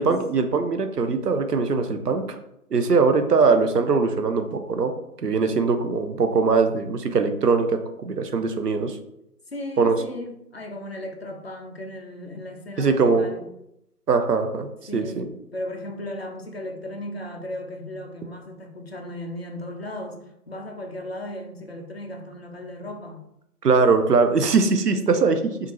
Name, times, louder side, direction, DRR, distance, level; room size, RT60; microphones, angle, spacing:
voice 1, 0.0-2.4 2.7-4.9 5.2-9.0 9.8-9.9 12.8-13.3 14.1-15.3 23.6-25.4, right 4 dB, 80° right, 0.7 m, -21 dB
voice 2, 9.5-13.4 14.9-20.2 20.5-23.2, left 1 dB, 40° left, 0.6 m, -36 dB
5.0 x 2.6 x 2.9 m
figure-of-eight pair, 155°, 47 cm